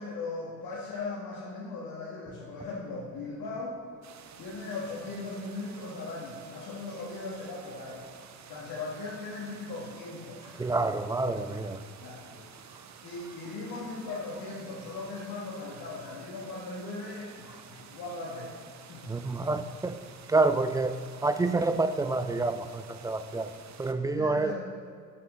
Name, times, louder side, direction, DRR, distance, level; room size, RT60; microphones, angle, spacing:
voice 1, 0.0-3.8 4.4-8.0 8.4-10.7 12.0-12.5 13.0-18.5 18.9-19.0 24.1-24.5, left 3 dB, 55° left, -5 dB, 1.5 m, -38 dB
sound 1, 4.0-23.9, right 7 dB, 40° right, 0.8 m, -51 dB
voice 2, 10.6-11.8 19.1-20.0 20.3-23.5 23.8-24.5, right 3 dB, 10° right, 10 dB, 0.3 m, -28 dB
7.5 x 7.1 x 3.7 m, 2.2 s
hypercardioid pair, 50°, 41 cm